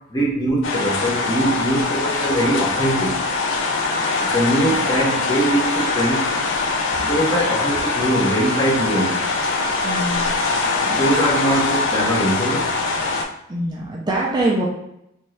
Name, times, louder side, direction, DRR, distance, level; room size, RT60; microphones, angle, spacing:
voice 1, 0.1-3.1 4.3-6.3 7.0-9.2 10.8-12.7, right 1 dB, 20° left, -4 dB, 0.7 m, -21 dB
sound 1, 0.6-13.2, left 3 dB, 60° left, 0.4 m, -22 dB
voice 2, 9.8-10.2 13.5-14.7, right 1 dB, 20° right, -3 dB, 0.4 m, -23 dB
2.7 x 2.6 x 3.1 m, 0.79 s
head